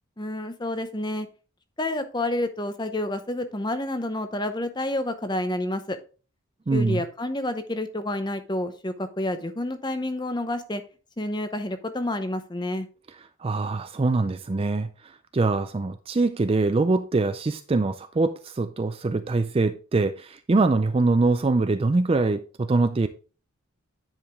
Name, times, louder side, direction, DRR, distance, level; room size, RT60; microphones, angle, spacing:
voice 1, 0.2-1.3 1.8-6.0 6.7-10.8 11.2-12.9, left 1 dB, 20° left, 0.7 m, -29 dB
voice 2, 6.7-7.0 13.4-14.9 15.3-23.1, right 3 dB, 25° right, 0.3 m, -23 dB
9.9 x 5.0 x 3.6 m
head